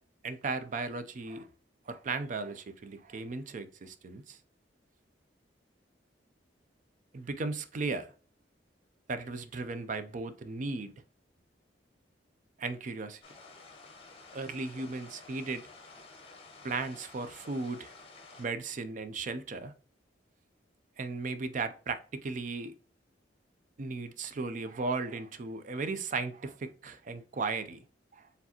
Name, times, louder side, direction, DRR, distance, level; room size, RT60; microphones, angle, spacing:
voice 1, 0.2-1.5 1.9-4.4 7.1-8.1 9.1-10.9 12.6-13.2 14.3-15.7 16.6-17.9 18.4-19.7 21.0-22.7 23.8-27.8 28.1-28.3, right 3 dB, 45° right, 0.4 m, -36 dB
sound 1, 13.2-18.5, left 3 dB, 35° left, 0.9 m, -52 dB
4.6 x 3.3 x 2.8 m
head